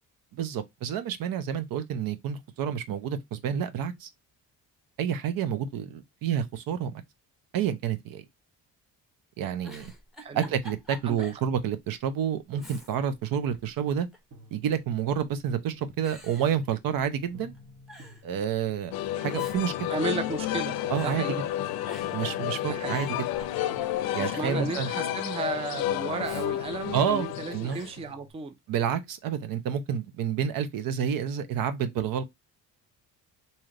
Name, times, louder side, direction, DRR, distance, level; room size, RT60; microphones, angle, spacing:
voice 1, 0.3-4.1 5.0-6.9 7.5-8.2 9.4-9.9 10.3-14.1 14.5-17.5 18.2-18.9 19.2-19.7 20.9-21.3 22.1-23.1 24.1-24.9 26.9-27.8 28.7-32.2, right 8 dB, 75° right, 0.7 m, -29 dB
Giggle, 9.6-11.5 11.8-11.9 12.5-13.2 13.5-14.3 15.1-15.5 16.0-17.3 17.5-17.6 17.9-18.3 19.1-20.6 20.9-21.2 21.8-22.3 22.7-24.1 26.1-27.2 27.7-28.0, left 1 dB, ahead, 0.8 m, -47 dB
voice 2, 10.2-10.5 11.1-11.2 19.9-20.8 21.0-21.5 22.6-23.2 24.2-28.5, right 4 dB, 15° right, 0.4 m, -34 dB
sound 1, 14.3-28.3, equal, 50° right, 1.0 m, -53 dB
sound 2, 18.9-28.1, left 13 dB, 90° left, 0.5 m, -31 dB
3.2 x 2.8 x 3.7 m
cardioid pair, 135°, 35 cm